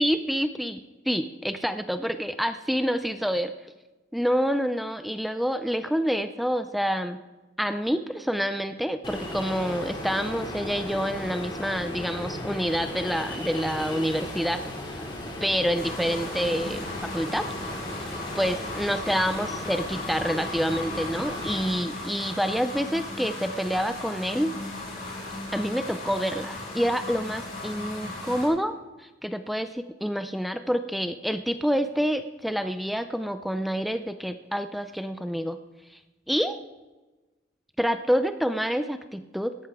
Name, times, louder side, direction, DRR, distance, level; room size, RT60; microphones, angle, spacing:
voice 1, 0.0-3.5 4.1-7.2 7.6-14.6 15.4-17.5 18.0-18.1 18.4-24.5 25.5-35.6 35.9-36.0 36.3-36.6 37.8-39.5, equal, ahead, 9 dB, 0.4 m, -27 dB
Ocean, 9.0-21.7, left 1 dB, 25° left, 2.5 m, -36 dB
sound 1, 15.8-28.5, left 2 dB, 50° left, 4.9 m, -36 dB
17.5 x 12.5 x 3.6 m, 1.2 s
head